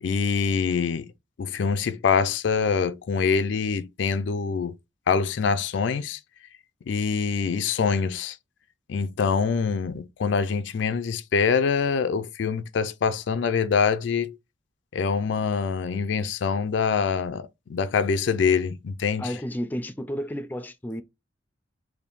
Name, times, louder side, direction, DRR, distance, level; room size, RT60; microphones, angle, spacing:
voice 1, 0.0-1.1 1.4-4.8 5.1-6.2 6.9-8.4 8.9-14.4 14.9-19.3, left 5 dB, 80° left, 0.4 m, -25 dB
voice 2, 19.2-21.0, equal, 10° left, 0.4 m, -32 dB
3.5 x 2.6 x 3.9 m
head